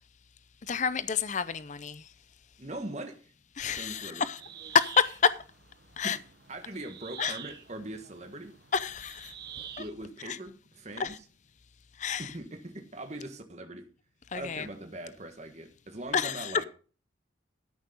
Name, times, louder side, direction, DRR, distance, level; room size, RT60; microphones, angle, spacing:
voice 1, 0.7-2.0 3.6-4.4 4.7-5.4 6.0-6.2 7.2-7.4 8.7-9.3 10.3-10.4 11.0-11.1 12.0-12.3 14.3-14.7 16.1-16.5, left 6 dB, 40° left, 0.5 m, -28 dB
voice 2, 2.6-3.3 3.8-4.3 6.0-6.2 6.5-8.6 9.8-11.2 12.2-13.9 14.3-16.6, right 1 dB, 35° right, 1.4 m, -41 dB
sound 1, 4.4-9.9, right 9 dB, 55° right, 1.2 m, -47 dB
13.5 x 6.5 x 5.1 m
head